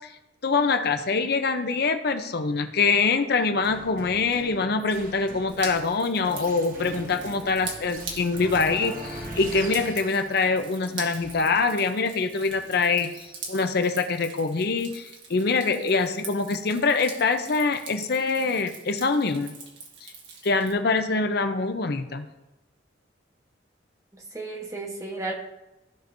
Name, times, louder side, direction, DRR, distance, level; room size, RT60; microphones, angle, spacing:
voice 1, 0.4-13.1 13.5-19.6 20.0-20.1 20.4-22.2, left 4 dB, 55° left, 8 dB, 0.6 m, -24 dB
sound 1, 3.6-13.4, right 1 dB, 45° right, 1.1 m, -41 dB
Drip, 5.5-20.7, right 4 dB, 75° right, 1.6 m, -43 dB
voice 2, 15.8-16.2 24.1-25.3, right 3 dB, 15° right, 1 dB, 1.1 m, -34 dB
15.0 x 5.2 x 2.6 m, 0.99 s
head